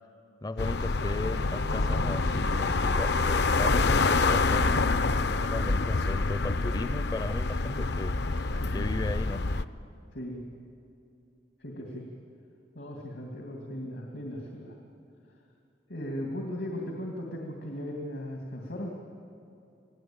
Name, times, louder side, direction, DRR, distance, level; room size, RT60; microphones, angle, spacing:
voice 1, 0.4-9.4, left 2 dB, 20° left, 13 dB, 0.5 m, -37 dB
sound 1, 0.6-9.7, left 3 dB, 65° left, 0.7 m, -26 dB
voice 2, 10.1-10.5 11.6-12.1 12.7-14.8 15.9-18.9, equal, 80° left, 0 dB, 2.5 m, -37 dB
27.0 x 18.5 x 8.8 m, 2.6 s
head